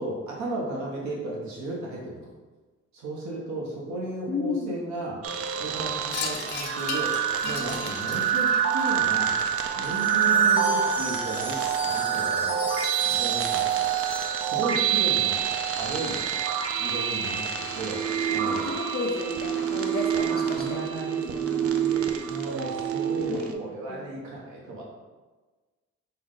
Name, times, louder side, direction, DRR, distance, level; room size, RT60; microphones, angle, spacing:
voice 1, 0.0-2.3 2.9-5.2 5.6-7.2 7.4-9.4 9.8-11.6 11.8-12.6 13.0-13.7 14.3-15.4 15.8-16.2 16.8-18.0 18.3-18.7 20.3-24.8, right 2 dB, 70° right, -4 dB, 1.1 m, -34 dB
voice 2, 4.3-4.8 10.1-10.2 17.2-17.4 18.4-20.8 22.7-22.8 23.3-24.0, left 4 dB, 35° left, 2 dB, 0.4 m, -33 dB
sound 1, 5.2-23.5, right 8 dB, 50° right, 0.5 m, -26 dB
Wind chime, 6.1-10.7, left 6 dB, 85° left, 0.6 m, -38 dB
sound 2, 9.8-15.2, equal, 5° right, 0.7 m, -38 dB
5.6 x 2.2 x 3.7 m, 1.3 s
cardioid pair, 90°, 30 cm